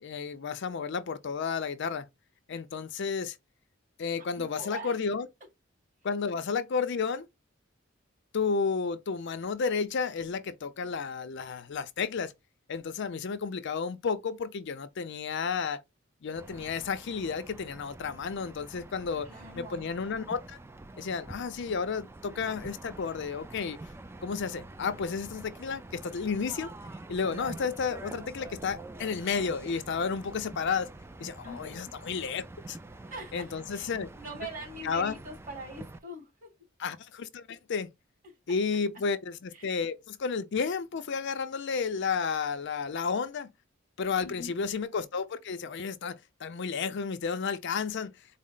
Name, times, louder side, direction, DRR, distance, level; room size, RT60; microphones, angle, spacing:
voice 1, 0.0-2.1 2.5-3.4 4.0-5.3 6.0-7.3 8.3-12.3 12.7-15.8 16.2-20.6 21.0-23.8 24.2-26.7 27.1-30.9 31.2-32.8 33.3-34.1 34.8-35.1 36.8-37.9 38.5-43.5 44.0-48.1, left 5 dB, 60° left, 0.5 m, -32 dB
voice 2, 4.4-5.0 19.2-19.9 31.4-31.9 33.1-36.5 38.2-38.3 39.5-39.8 44.2-44.6, right 1 dB, 45° right, 2.5 m, -43 dB
sound 1, 16.4-36.0, right 2 dB, 10° right, 0.3 m, -46 dB
4.1 x 2.0 x 3.7 m
head